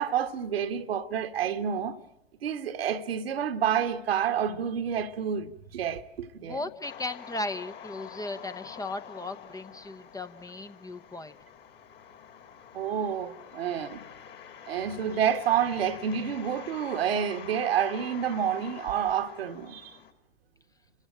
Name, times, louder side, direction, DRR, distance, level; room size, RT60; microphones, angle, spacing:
voice 1, 0.0-2.0 2.4-6.6 12.7-14.0 14.7-19.9, right 8 dB, 70° right, 1.5 m, -29 dB
voice 2, 6.4-11.4, left 2 dB, 10° left, 0.9 m, -36 dB
sound 1, 6.8-20.1, left 8 dB, 35° left, 2.6 m, -47 dB
29.0 x 15.5 x 8.9 m
figure-of-eight pair, 85°, 31 cm